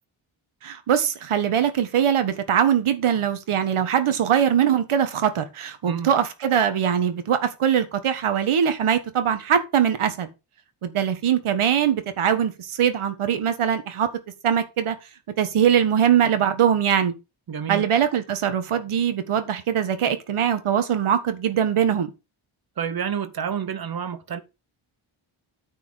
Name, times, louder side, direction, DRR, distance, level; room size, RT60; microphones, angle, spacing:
voice 1, 0.6-10.3 10.8-14.1 14.4-15.0 15.4-17.1 17.7-22.1, right 9 dB, 80° right, 1.7 m, -22 dB
voice 2, 17.5-17.8 22.8-24.4, right 7 dB, 45° right, 1.1 m, -29 dB
9.5 x 4.7 x 6.4 m
wide cardioid pair, 165°, 49 cm